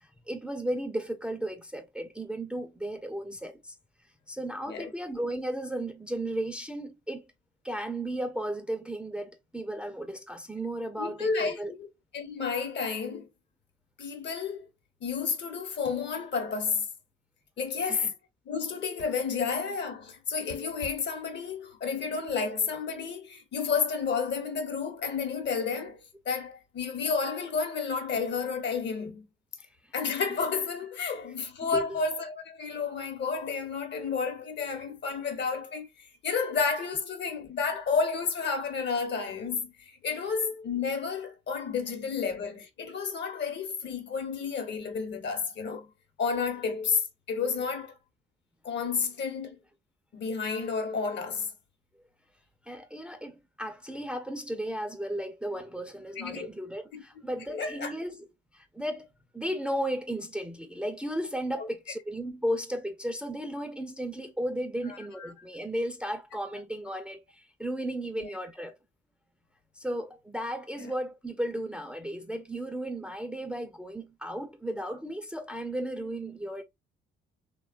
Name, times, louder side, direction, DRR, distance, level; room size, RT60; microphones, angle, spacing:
voice 1, 0.0-3.8 4.3-7.3 7.6-11.7 17.8-18.1 31.6-31.9 52.7-58.3 58.5-59.1 59.3-68.7 69.8-76.6, right 1 dB, 5° right, 0.4 m, -35 dB
voice 2, 11.0-11.9 12.1-13.3 14.0-14.7 15.0-16.9 17.6-18.1 18.5-29.2 29.9-45.9 46.2-48.0 48.6-49.6 50.1-51.5 56.2-56.5 56.9-57.0 57.5-57.9 61.6-61.7 64.9-65.3 68.2-68.3 70.8-70.9, left 5 dB, 60° left, 0.9 m, -31 dB
2.8 x 2.3 x 2.4 m
cardioid pair, 90°, 20 cm